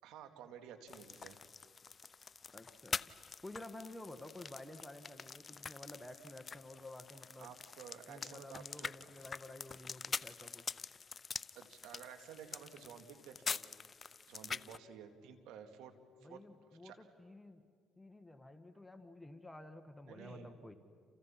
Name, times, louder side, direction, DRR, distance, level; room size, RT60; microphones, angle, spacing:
voice 1, 0.0-1.4 7.4-9.1 11.6-13.6 14.3-15.9 16.2-16.4 16.8-17.0 20.1-20.5, right 8 dB, 80° right, 8 dB, 2.4 m, -53 dB
sound 1, 0.9-14.8, left 5 dB, 35° left, 0.6 m, -45 dB
voice 2, 2.5-3.0 3.4-7.5 8.1-10.6 16.2-17.6 18.0-20.7, left 2 dB, 10° left, 8 dB, 1.6 m, -52 dB
29.0 x 29.0 x 5.9 m, 2.2 s
supercardioid pair, 80°, 0 cm